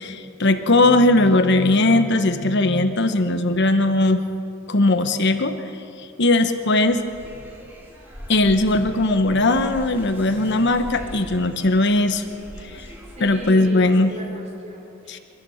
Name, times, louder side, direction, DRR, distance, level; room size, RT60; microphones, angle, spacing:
voice 1, 0.0-4.2 4.7-5.5 6.0-7.0 8.3-12.2 12.7-12.9 13.2-14.2 15.1-15.2, left 2 dB, 55° left, 8 dB, 1.1 m, -19 dB
sound 1, 6.4-13.6, equal, 10° right, 3.0 m, -41 dB
voice 2, 13.2-15.2, right 1 dB, 35° right, 0 dB, 4.4 m, -37 dB
28.0 x 13.5 x 7.1 m, 2.9 s
head